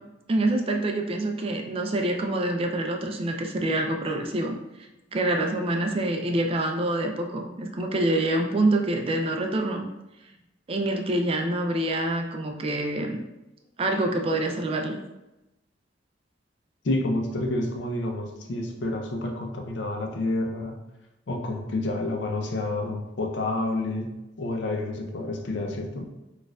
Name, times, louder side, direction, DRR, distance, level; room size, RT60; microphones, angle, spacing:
voice 1, 0.3-4.6 5.1-9.9 10.7-13.2 13.8-15.0, right 1 dB, 30° right, 3 dB, 0.3 m, -26 dB
voice 2, 16.8-20.8 21.3-26.1, left 2 dB, 65° left, 2 dB, 0.5 m, -29 dB
4.2 x 2.4 x 2.3 m, 0.96 s
head